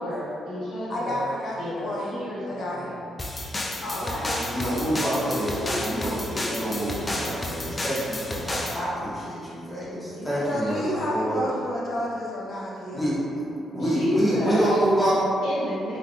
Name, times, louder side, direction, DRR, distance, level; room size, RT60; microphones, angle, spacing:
voice 1, 0.0-1.3 1.6-3.0 3.8-6.6 10.1-10.4 11.4-11.7 13.7-14.7 15.4-16.0, equal, 80° left, -9 dB, 1.1 m, -32 dB
voice 2, 0.9-2.1 2.5-2.9 10.4-13.1, left 1 dB, 55° left, -5 dB, 0.8 m, -30 dB
sound 1, 3.2-8.8, left 1 dB, 25° left, 0.3 m, -32 dB
voice 3, 4.5-6.1 6.5-11.4 12.9-15.3, right 1 dB, 5° left, -10 dB, 1.0 m, -27 dB
3.4 x 2.9 x 2.4 m, 2.6 s
cardioid pair, 90°, 0 cm